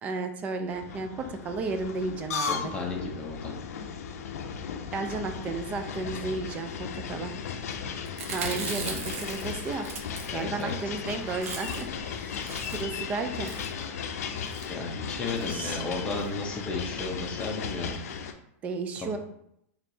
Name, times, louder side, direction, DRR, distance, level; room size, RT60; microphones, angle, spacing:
voice 1, 0.0-2.7 4.9-7.3 8.3-9.9 10.3-13.5 15.5-15.8 18.6-19.2, right 3 dB, 15° right, 6 dB, 0.3 m, -33 dB
sound 1, 0.7-18.3, left 7 dB, 80° left, 0.5 m, -36 dB
voice 2, 2.4-3.5 8.5-9.1 10.3-10.7 14.7-18.0 19.0-19.2, left 3 dB, 15° left, 0 dB, 0.7 m, -34 dB
Chewing mastication, 8.1-10.7 11.0-11.1 11.3-12.0 12.3-13.0 13.4-13.8 14.4-14.7 15.4-15.6 15.9-16.0 16.2-16.3, right 4 dB, 65° right, 0.8 m, -38 dB
4.4 x 3.1 x 2.7 m, 0.76 s
supercardioid pair, 165°, 8 cm